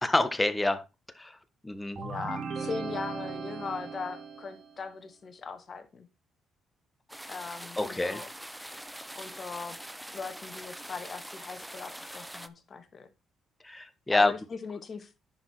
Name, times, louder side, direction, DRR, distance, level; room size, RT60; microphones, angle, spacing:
voice 1, 0.0-0.8 1.2-1.3 1.6-2.0 7.8-8.2 13.6-14.3, left 2 dB, 15° left, 1.2 m, -27 dB
voice 2, 2.0-6.1 7.3-8.3 9.2-9.8 10.1-13.1 14.1-15.1, left 5 dB, 45° left, 1.6 m, -39 dB
sound 1, 2.0-4.8, right 5 dB, 60° right, 2.0 m, -37 dB
sound 2, 7.1-12.5, right 1 dB, 5° right, 0.7 m, -43 dB
10.5 x 4.8 x 4.3 m
cardioid pair, 90°, 0 cm